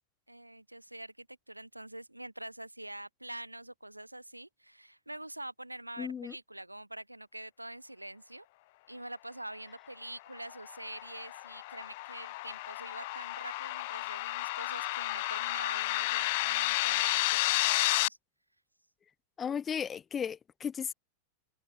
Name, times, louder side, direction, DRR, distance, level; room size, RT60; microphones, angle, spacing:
voice 1, 0.3-8.5 8.9-18.2, right 1 dB, 85° right, 7.6 m, -45 dB
voice 2, 6.0-6.3 19.4-20.9, left 7 dB, 20° left, 4.3 m, -35 dB
sound 1, 10.4-18.1, left 21 dB, 50° left, 0.8 m, -32 dB
open air
figure-of-eight pair, 90°, 0 cm